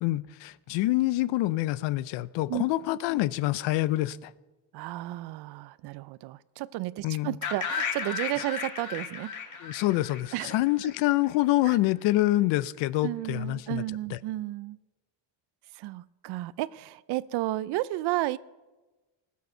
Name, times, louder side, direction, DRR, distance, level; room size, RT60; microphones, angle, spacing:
voice 1, 0.0-4.3 7.0-7.4 9.6-13.8 14.1-14.2, left 17 dB, 80° left, 0.7 m, -26 dB
voice 2, 4.7-9.3 10.3-10.5 13.0-14.8 15.8-18.4, right 17 dB, 65° right, 0.6 m, -32 dB
sound 1, 7.4-11.3, left 6 dB, 40° left, 1.7 m, -34 dB
19.5 x 8.5 x 6.6 m
cardioid pair, 180°, 44 cm